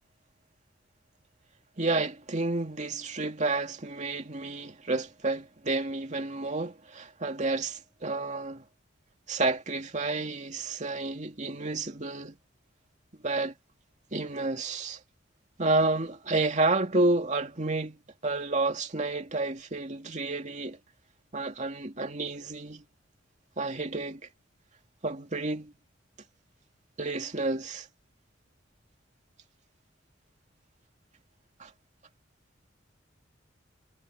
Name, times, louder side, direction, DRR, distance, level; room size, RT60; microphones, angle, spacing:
voice 1, 1.8-8.6 9.3-12.4 13.2-13.5 14.1-15.0 15.6-18.0 18.2-20.8 21.3-22.8 23.6-24.2 25.0-25.7 27.0-27.9 31.6-31.7, right 2 dB, 40° right, 2.4 m, -30 dB
head